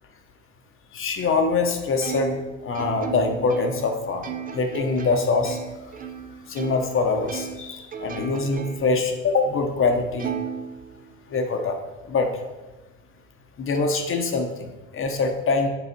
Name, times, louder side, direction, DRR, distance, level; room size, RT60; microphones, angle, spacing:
voice 1, 0.9-2.4 2.6-5.6 6.5-10.3 11.3-11.8 12.1-12.3 13.6-15.7, left 4 dB, 35° left, 5 dB, 1.1 m, -24 dB
Plucked string instrument, 2.0-7.0 7.3-9.0 9.4-9.5 10.2-11.4, right 7 dB, 20° right, 0.7 m, -35 dB
6.9 x 4.0 x 6.0 m, 1.1 s
supercardioid pair, 100°, 38 cm